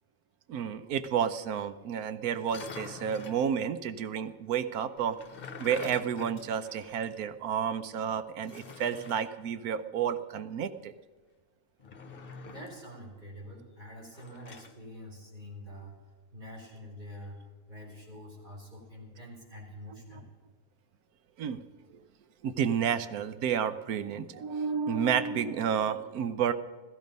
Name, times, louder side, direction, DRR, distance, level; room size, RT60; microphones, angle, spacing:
voice 1, 0.5-5.2 5.6-10.9 21.4-21.6 22.4-26.5, right 8 dB, 90° right, 12 dB, 1.2 m, -31 dB
sound 1, 2.4-3.5 5.0-7.2 7.5-7.6 8.4-9.3 11.8-12.8 14.1-14.8, left 4 dB, 45° left, 1.0 m, -46 dB
voice 2, 12.5-16.0 16.3-20.2, equal, 30° right, -3 dB, 4.7 m, -46 dB
15.0 x 14.0 x 5.3 m, 1.4 s
omnidirectional pair, 1.5 m